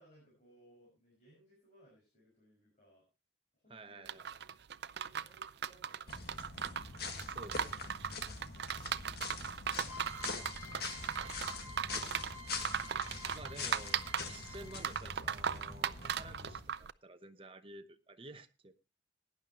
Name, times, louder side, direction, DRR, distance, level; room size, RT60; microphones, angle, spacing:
voice 1, 0.0-3.0 3.5-4.2 5.1-6.5 10.1-11.9, equal, 40° left, 6.2 m, -65 dB
voice 2, 3.7-4.3 7.2-7.9 13.3-18.8, right 2 dB, 30° right, 0.9 m, -52 dB
sound 1, 4.1-16.9, right 7 dB, 65° right, 0.5 m, -38 dB
sound 2, 6.1-16.6, left 4 dB, 60° left, 1.9 m, -44 dB
sound 3, 9.9-15.1, left 1 dB, 10° right, 2.1 m, -51 dB
17.0 x 10.5 x 3.0 m
head